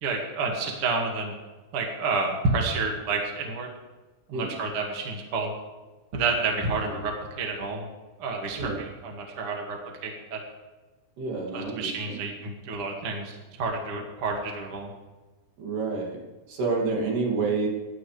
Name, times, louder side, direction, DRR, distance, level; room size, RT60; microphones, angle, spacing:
voice 1, 0.0-1.3 1.7-3.7 4.3-5.5 6.1-7.9 8.2-10.4 11.5-14.9, right 3 dB, 40° right, 1 dB, 2.3 m, -29 dB
voice 2, 11.2-12.2 15.6-16.2 16.5-17.7, right 4 dB, 70° right, -1 dB, 4.6 m, -29 dB
26.5 x 11.5 x 3.4 m, 1.2 s
omnidirectional pair, 5.0 m